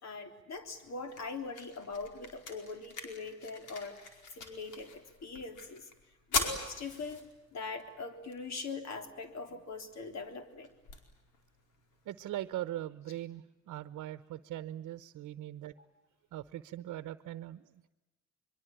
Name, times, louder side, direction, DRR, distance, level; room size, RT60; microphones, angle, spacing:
voice 1, 0.0-5.9 6.3-10.7, left 4 dB, 60° left, 7 dB, 3.6 m, -42 dB
sound 1, 0.5-12.5, left 4 dB, 85° left, 4.8 m, -43 dB
voice 2, 12.0-15.7 16.3-17.9, right 13 dB, 75° right, 13 dB, 0.9 m, -41 dB
24.5 x 23.0 x 9.0 m, 1.0 s
cardioid pair, 90°, 30 cm